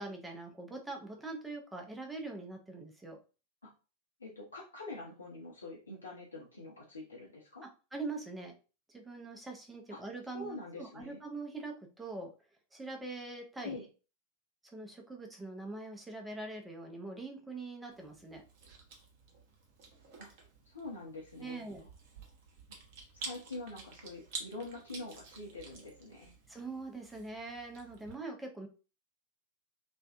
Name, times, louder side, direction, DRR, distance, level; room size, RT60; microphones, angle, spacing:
voice 1, 0.0-3.2 7.9-8.5 8.9-12.3 12.7-13.8 14.6-18.4 21.4-21.9 26.5-28.7, right 3 dB, 5° right, 2 dB, 0.6 m, -43 dB
voice 2, 4.2-7.7 9.9-10.0 10.3-11.2 13.6-13.9 20.2-20.3 20.7-21.7 23.1-26.3, left 2 dB, 75° left, -4 dB, 0.7 m, -45 dB
Chewing mastication, 17.9-28.1, right 4 dB, 45° right, 0.7 m, -50 dB
2.5 x 2.1 x 2.4 m, 0.34 s
figure-of-eight pair, 90°, 0 cm